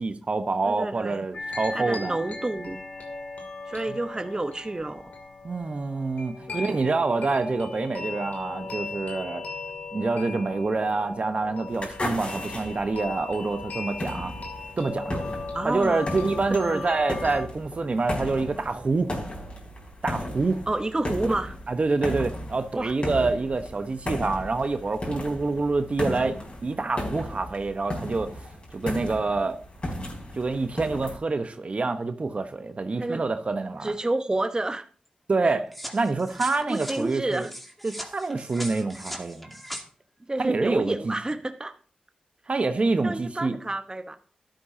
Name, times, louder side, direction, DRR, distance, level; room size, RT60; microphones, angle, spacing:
voice 1, 0.0-2.2 5.4-9.4 9.9-14.3 14.8-15.3 15.6-19.1 20.0-20.6 21.7-26.4 26.6-28.3 28.7-29.6 30.3-33.9 35.3-37.5 37.8-39.5 40.4-41.1 42.5-43.6, right 3 dB, 50° right, 1.1 m, -27 dB
voice 2, 0.6-1.2 1.7-2.8 3.7-5.1 6.5-6.7 15.1-15.2 15.5-16.1 16.5-16.9 20.7-21.6 22.7-22.9 33.0-33.2 33.8-34.9 35.4-35.6 36.7-37.5 40.3-41.7 43.0-44.2, right 2 dB, 30° right, 1.0 m, -29 dB
sound 1, 1.3-17.4, left 3 dB, 75° left, 2.8 m, -38 dB
sound 2, 11.7-31.2, left 1 dB, 45° left, 4.9 m, -35 dB
sound 3, 35.7-39.8, equal, 5° left, 2.3 m, -39 dB
12.5 x 12.0 x 2.8 m
cardioid pair, 40°, 3 cm